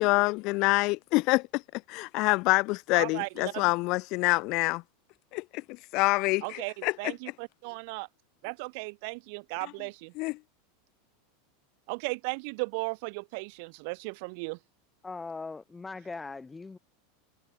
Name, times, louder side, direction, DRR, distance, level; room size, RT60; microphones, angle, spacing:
voice 1, 0.0-4.8 5.3-5.6 5.9-7.1 10.2-10.4, left 24 dB, 55° left, 1.0 m, -26 dB
voice 2, 2.9-3.7 6.4-8.1 8.4-10.1 11.9-14.6, right 32 dB, 60° right, 3.6 m, -36 dB
voice 3, 15.0-16.8, left 3 dB, 15° left, 7.5 m, -40 dB
supercardioid pair, 120°, 0 cm